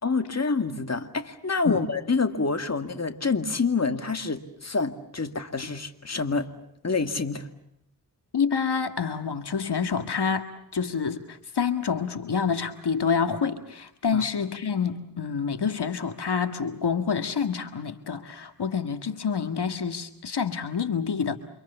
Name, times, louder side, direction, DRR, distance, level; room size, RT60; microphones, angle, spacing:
voice 1, 0.0-6.5 6.8-7.5 14.1-14.2, left 4 dB, 40° left, 8 dB, 2.2 m, -27 dB
voice 2, 8.3-10.5 10.7-21.4, left 6 dB, 75° left, 8 dB, 1.9 m, -27 dB
29.5 x 26.0 x 7.0 m, 0.75 s
wide cardioid pair, 70°, 40 cm